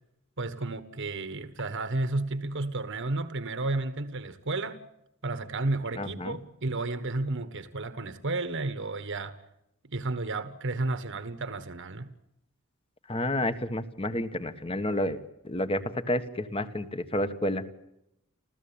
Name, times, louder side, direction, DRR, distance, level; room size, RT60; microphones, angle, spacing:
voice 1, 0.4-4.8 5.2-9.3 9.8-12.1, right 2 dB, 60° right, 1.4 m, -32 dB
voice 2, 6.0-6.4 13.1-15.2 15.4-17.7, left 1 dB, 25° left, 1.5 m, -30 dB
29.0 x 14.5 x 8.8 m
head